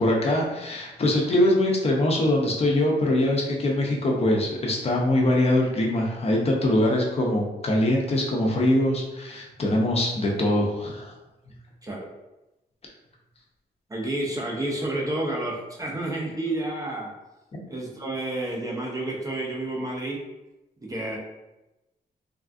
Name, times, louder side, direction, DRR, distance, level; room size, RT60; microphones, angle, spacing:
voice 1, 0.0-11.1, left 1 dB, 35° left, -1 dB, 0.5 m, -23 dB
voice 2, 13.9-17.1 17.7-20.2 20.8-21.2, right 1 dB, 20° right, -2 dB, 0.4 m, -30 dB
3.3 x 2.3 x 2.4 m, 0.98 s
wide cardioid pair, 180°, 18 cm